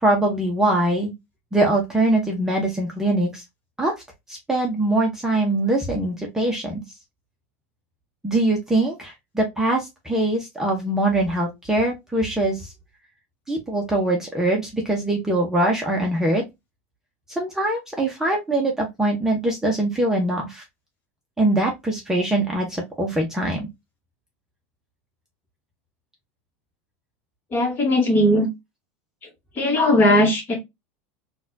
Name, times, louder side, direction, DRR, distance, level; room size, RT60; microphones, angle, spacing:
voice 1, 0.0-1.1 1.5-3.4 3.8-3.9 4.3-6.8 8.2-12.7 13.5-16.5 17.4-20.6 21.4-23.7, right 1 dB, 5° right, 0.8 m, -22 dB
voice 2, 27.5-28.5 29.6-30.6, left 1 dB, 30° left, 1.5 m, -18 dB
4.0 x 2.4 x 2.6 m
supercardioid pair, 130°, 7 cm